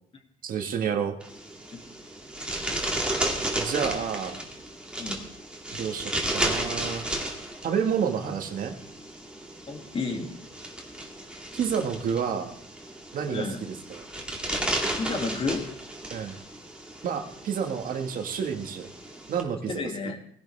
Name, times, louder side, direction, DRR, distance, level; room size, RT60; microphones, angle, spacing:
voice 1, 0.4-1.2 3.5-4.4 5.7-7.0 7.6-8.7 11.5-12.5 13.1-14.0 16.1-16.4 17.0-18.9 19.3-19.7, right 7 dB, 55° right, 5 dB, 1.6 m, -29 dB
sound 1, 1.2-19.4, right 1 dB, 5° right, 2.4 m, -34 dB
voice 2, 9.7-10.3 13.3-13.6 15.0-15.7 19.8-20.2, left 3 dB, 35° left, 3 dB, 2.3 m, -31 dB
19.5 x 11.0 x 3.3 m, 0.67 s
cardioid pair, 110°, 17 cm